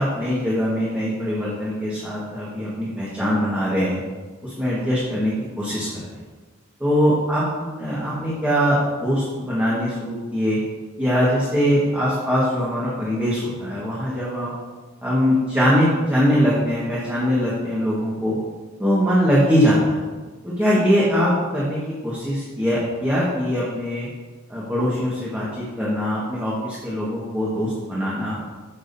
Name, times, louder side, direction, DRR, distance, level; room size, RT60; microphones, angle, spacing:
voice 1, 0.0-4.0 4.4-6.0 6.8-10.6 11.0-14.5 15.0-18.4 18.8-20.0 20.4-24.1 24.5-28.4, equal, 10° right, -8 dB, 1.5 m, -22 dB
13.5 x 6.2 x 2.7 m, 1.3 s
head